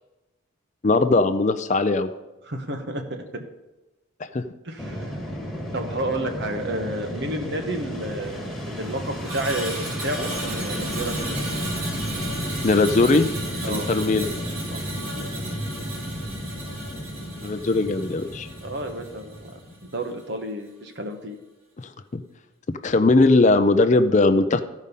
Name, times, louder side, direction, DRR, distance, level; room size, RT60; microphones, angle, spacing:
voice 1, 0.8-2.1 4.2-4.4 12.6-13.3 13.7-14.3 17.4-18.5 22.1-22.2 22.8-24.6, left 3 dB, 35° left, 9 dB, 0.4 m, -19 dB
voice 2, 2.5-3.4 4.6-5.2 5.7-11.4 13.6-13.9 14.7-14.9 18.6-21.3, right 1 dB, 55° right, 5 dB, 1.1 m, -31 dB
Fixed-wing aircraft airplane, 4.8-20.0, equal, ahead, 1.6 m, -33 dB
Screech, 9.2-19.6 19.9-20.2, right 2 dB, 90° right, 2.4 m, -35 dB
14.5 x 5.2 x 5.4 m, 1.0 s
head